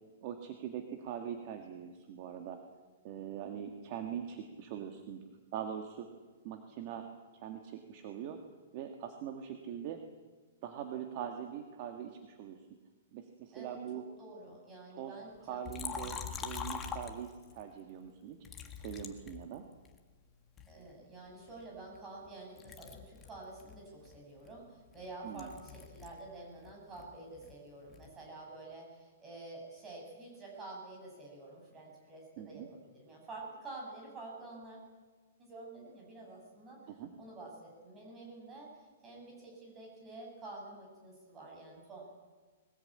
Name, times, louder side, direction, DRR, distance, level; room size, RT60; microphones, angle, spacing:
voice 1, 0.2-2.6 3.0-5.2 5.5-6.1 6.4-7.1 7.3-8.4 8.7-10.0 10.6-12.6 13.1-14.0 14.9-15.1 15.5-16.2 16.4-18.4 18.8-19.6 25.2-25.5 32.4-32.7 36.9-37.1, right 9 dB, 35° right, 5 dB, 1.7 m, -42 dB
voice 2, 13.5-15.6 15.9-16.2 20.7-34.8 35.4-36.8 37.2-38.7 39.0-42.0, right 2 dB, 15° right, -1 dB, 7.3 m, -49 dB
Liquid, 15.7-17.6 18.4-20.0 20.6-22.3 22.6-26.3 26.6-28.2, left 7 dB, 15° left, 1.6 m, -44 dB
21.5 x 20.0 x 8.8 m, 1.3 s
hypercardioid pair, 170°, 0 cm